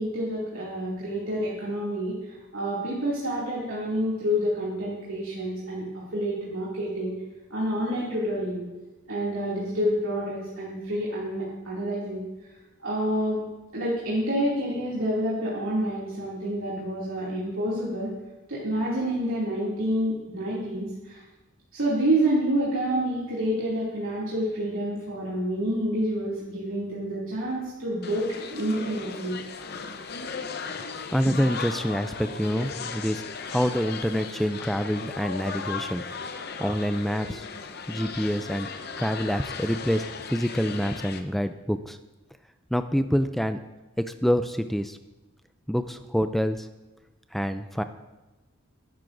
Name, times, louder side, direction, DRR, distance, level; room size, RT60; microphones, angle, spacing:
voice 1, 0.0-5.8 6.1-7.1 7.5-8.6 9.1-12.2 12.8-13.4 13.7-18.1 18.5-21.2 21.7-29.4, equal, 70° right, -8 dB, 2.5 m, -28 dB
sound 1, 28.0-41.2, left 5 dB, 50° left, 0.7 m, -37 dB
voice 2, 30.8-36.0 36.6-37.5 37.9-42.0 42.7-43.6 44.0-45.0 45.7-46.7 47.3-47.8, equal, ahead, 9 dB, 0.3 m, -27 dB
18.5 x 10.5 x 2.6 m, 1.1 s
head